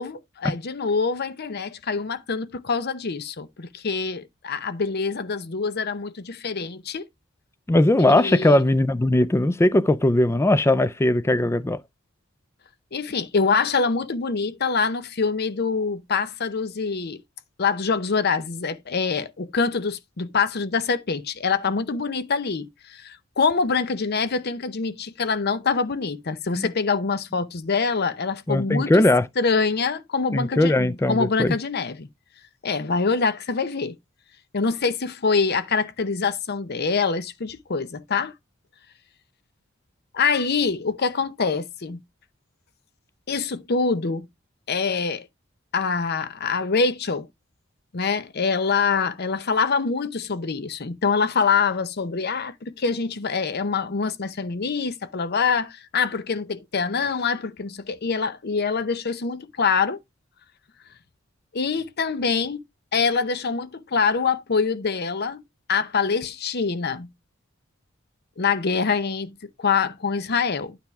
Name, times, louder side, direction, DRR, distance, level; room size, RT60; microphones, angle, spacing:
voice 1, 0.0-7.1 8.0-8.6 12.9-17.2 17.6-29.0 29.4-32.1 32.6-34.0 34.5-38.3 40.1-42.0 43.3-44.3 44.7-45.3 45.7-47.3 47.9-60.0 61.5-62.6 62.9-65.4 65.7-67.1 68.4-70.8, left 5 dB, 50° left, 0.7 m, -25 dB
voice 2, 7.7-11.8 26.5-26.7 28.5-29.3 30.3-31.5, left 1 dB, 15° left, 0.4 m, -19 dB
9.3 x 3.4 x 5.8 m
head